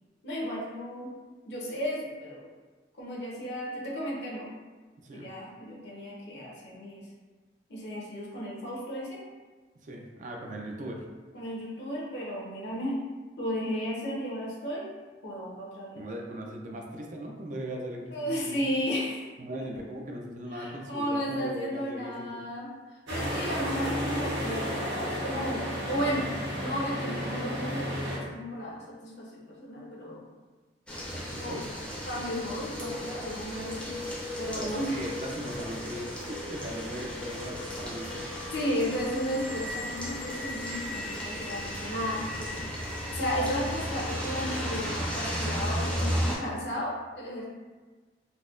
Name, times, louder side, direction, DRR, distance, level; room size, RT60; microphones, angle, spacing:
voice 1, 0.2-1.1 1.5-2.5 2.9-4.5 5.1-7.1 7.7-9.2 11.3-13.0 13.4-14.9 15.2-16.0 18.1-19.3 20.5-26.3 26.5-30.2 31.3-31.5 32.1-34.0 34.4-35.1 38.5-42.6 43.1-47.4, equal, 70° left, -4 dB, 0.8 m, -34 dB
voice 2, 5.0-5.3 9.8-11.0 16.0-18.7 19.4-22.4 31.1-31.7 34.3-38.2, right 1 dB, 45° right, 1 dB, 0.4 m, -39 dB
sound 1, 23.1-28.2, equal, 85° right, 1.1 m, -32 dB
sound 2, 30.9-46.4, equal, 5° left, 0.5 m, -34 dB
4.0 x 2.1 x 2.4 m, 1.4 s
head